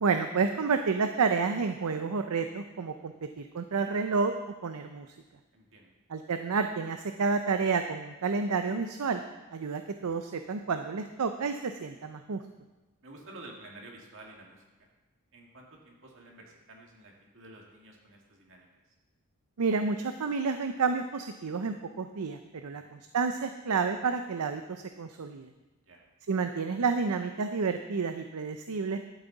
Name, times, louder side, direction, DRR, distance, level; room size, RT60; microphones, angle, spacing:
voice 1, 0.0-4.3 4.6-5.1 6.1-9.2 9.5-12.4 19.6-25.5 26.3-29.0, right 5 dB, 85° right, 7 dB, 0.6 m, -30 dB
voice 2, 5.5-5.9 13.0-14.6 15.3-18.7 22.7-23.0 25.9-26.0, right 2 dB, 60° right, -1 dB, 2.2 m, -51 dB
12.0 x 9.5 x 4.0 m, 1.1 s
head